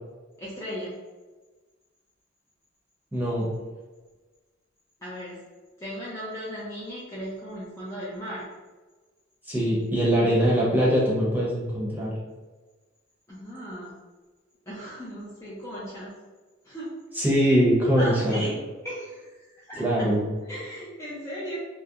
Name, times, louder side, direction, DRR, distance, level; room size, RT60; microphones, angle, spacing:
voice 1, 0.4-1.0 5.0-5.4 5.8-8.5 13.3-13.9 14.7-16.1 16.6-17.0 18.0-18.6 18.8-20.1 20.5-21.6, equal, 15° left, -8 dB, 0.4 m, -36 dB
voice 2, 3.1-3.5 9.5-12.1 17.2-18.4 19.8-20.3, equal, 10° right, -7 dB, 0.7 m, -22 dB
2.7 x 2.0 x 2.3 m, 1.3 s
head